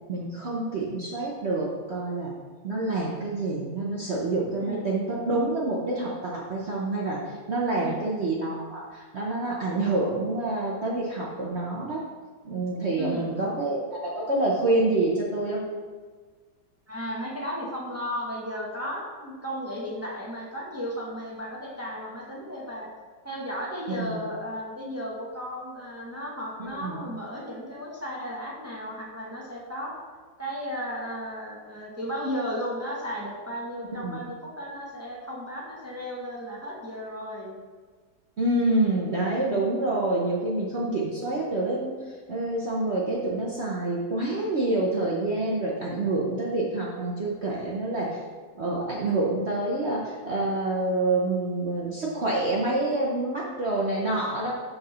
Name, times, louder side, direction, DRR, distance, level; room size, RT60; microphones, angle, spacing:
voice 1, 0.1-2.3 2.6-12.0 12.4-15.6 24.0-24.1 26.6-27.1 34.0-34.2 38.4-41.9 42.3-48.2 48.5-54.5, right 2 dB, 50° right, -4 dB, 0.8 m, -27 dB
voice 2, 7.7-8.1 12.9-13.3 16.9-22.9 23.2-29.9 30.4-37.6, equal, 10° right, -4 dB, 0.7 m, -34 dB
6.3 x 4.3 x 5.5 m, 1.5 s
omnidirectional pair, 2.1 m